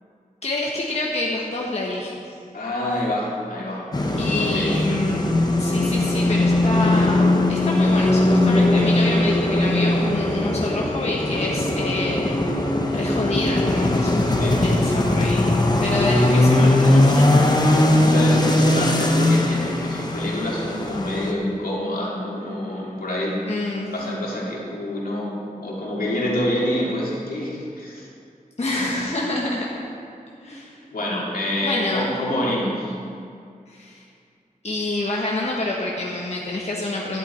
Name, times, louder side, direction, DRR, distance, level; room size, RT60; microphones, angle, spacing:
voice 1, 0.4-2.2 4.2-12.3 12.9-15.5 15.8-17.7 23.5-23.9 28.6-29.8 30.4-30.7 31.6-32.1 33.7-34.0 34.6-37.2, left 2 dB, 45° left, -3 dB, 1.4 m, -27 dB
voice 2, 2.5-3.9 4.4-4.8 14.3-14.7 18.0-23.4 23.9-28.1 28.7-29.0 30.4-30.5 30.9-33.0, left 1 dB, 75° left, -4 dB, 2.7 m, -27 dB
sound 1, 3.9-21.3, left 1 dB, 25° left, 1.2 m, -19 dB
11.5 x 11.0 x 4.5 m, 2.3 s
wide cardioid pair, 80°, 15 cm